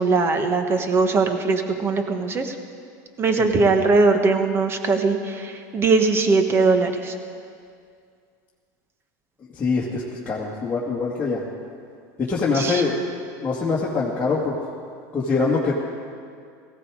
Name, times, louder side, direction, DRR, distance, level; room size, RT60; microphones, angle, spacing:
voice 1, 0.0-2.5 3.2-7.1 12.6-12.8, right 3 dB, 25° right, 6 dB, 1.4 m, -20 dB
voice 2, 9.5-11.4 12.2-13.1 13.4-14.5 15.1-15.7, left 4 dB, 15° left, -7 dB, 2.1 m, -24 dB
17.5 x 16.0 x 4.9 m, 2.2 s
supercardioid pair, 130°, 9 cm